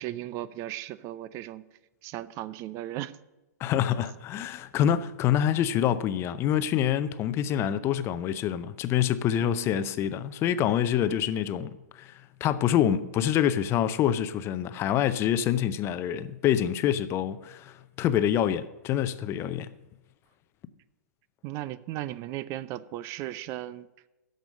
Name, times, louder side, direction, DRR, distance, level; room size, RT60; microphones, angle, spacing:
voice 1, 0.0-1.6 2.0-3.2 9.4-9.8 11.1-11.3 21.4-23.9, right 14 dB, 30° right, 0.5 m, -36 dB
voice 2, 3.6-12.1 12.4-19.7, left 10 dB, 25° left, 0.6 m, -26 dB
13.0 x 5.3 x 7.5 m
figure-of-eight pair, 115°, 9 cm